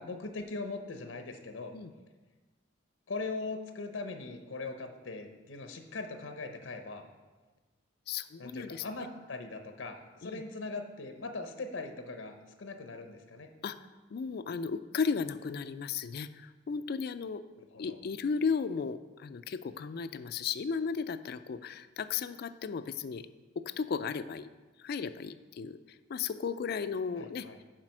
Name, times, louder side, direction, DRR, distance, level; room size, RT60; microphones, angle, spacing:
voice 1, 0.0-1.7 3.1-7.0 8.4-13.5 17.6-18.0 27.2-27.6, left 3 dB, 85° left, 6 dB, 0.8 m, -40 dB
voice 2, 8.1-8.8 10.2-10.4 13.6-13.8 14.1-17.4 17.8-23.3 23.6-24.5 24.8-27.5, left 5 dB, 55° left, 12 dB, 0.4 m, -35 dB
7.4 x 5.1 x 6.1 m, 1.3 s
head